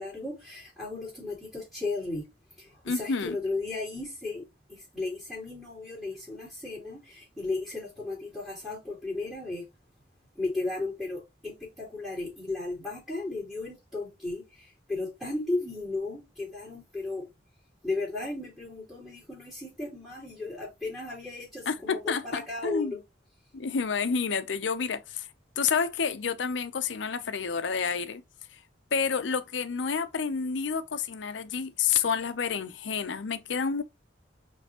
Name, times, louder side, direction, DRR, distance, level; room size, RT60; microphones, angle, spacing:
voice 1, 0.0-2.2 2.6-9.7 10.3-17.3 17.8-23.0, left 3 dB, 5° right, 3.0 m, -35 dB
voice 2, 2.8-3.4 21.7-23.0 23.5-25.3 25.6-28.2 28.9-33.8, left 6 dB, 80° left, 0.6 m, -29 dB
5.2 x 3.3 x 2.8 m
head